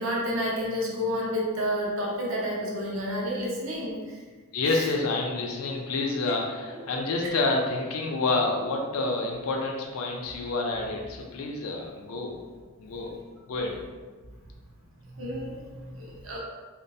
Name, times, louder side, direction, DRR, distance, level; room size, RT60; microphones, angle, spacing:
voice 1, 0.0-4.2 4.7-4.9 7.2-7.3 15.1-16.4, equal, 65° right, -4 dB, 0.6 m, -30 dB
voice 2, 4.5-12.4 12.8-13.1 13.5-13.8, left 3 dB, 75° left, 0 dB, 0.4 m, -28 dB
2.3 x 2.1 x 2.6 m, 1.4 s
head